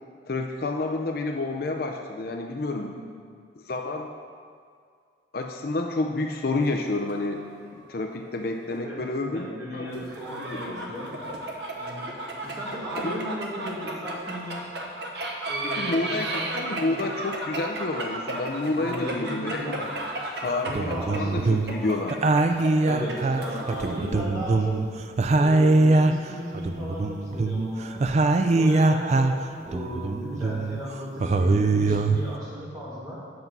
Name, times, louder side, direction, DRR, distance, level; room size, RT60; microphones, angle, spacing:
voice 1, 0.3-2.9 3.7-4.1 5.3-10.1 10.5-11.0 13.0-13.4 15.6-19.8 20.4-22.1, left 2 dB, 50° left, 3 dB, 0.5 m, -29 dB
voice 2, 2.8-3.2 8.7-9.0 9.3-11.2 11.8-12.1 12.4-14.7 15.5-17.1 18.7-19.9 20.4-22.5 22.8-24.9 25.4-28.1 28.5-33.2, equal, 15° right, -8 dB, 2.2 m, -36 dB
sound 1, 6.5-7.9 8.3-8.4 9.9-24.2, right 1 dB, 60° right, 1.0 m, -34 dB
sound 2, 20.5-21.8 22.1-24.9 25.2-29.5 29.7-30.8 31.2-32.4, right 2 dB, 35° right, 0.3 m, -22 dB
7.8 x 6.0 x 5.4 m, 2.2 s
head